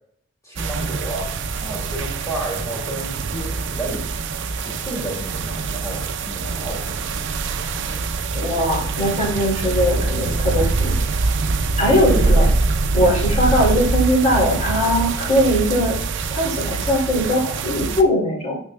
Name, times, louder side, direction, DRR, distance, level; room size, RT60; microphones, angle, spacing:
voice 1, 0.4-1.3 1.6-4.1 4.6-7.0 7.8-8.0 11.9-12.5 13.0-13.2, right 1 dB, 15° left, -2 dB, 2.2 m, -31 dB
sound 1, 0.6-18.0, right 3 dB, 55° right, 0.5 m, -24 dB
voice 2, 8.3-11.0 11.8-12.5 12.9-16.0 16.3-18.6, equal, 35° left, -7 dB, 2.6 m, -20 dB
9.8 x 6.3 x 2.2 m, 0.68 s
head